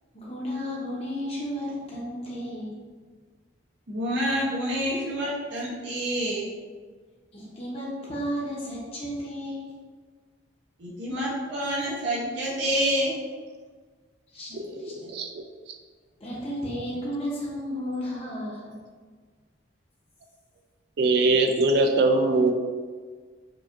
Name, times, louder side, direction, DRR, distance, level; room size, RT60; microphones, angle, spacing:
voice 1, 0.1-2.8 7.3-9.7 14.3-14.5 14.8-14.9 16.2-18.8, equal, 30° left, -5 dB, 0.8 m, -33 dB
voice 2, 3.9-6.5 10.8-13.1, equal, 70° right, -6 dB, 0.7 m, -27 dB
voice 3, 14.9-15.4 21.0-22.5, right 2 dB, 55° right, 4 dB, 0.3 m, -21 dB
4.7 x 2.4 x 2.5 m, 1.5 s
head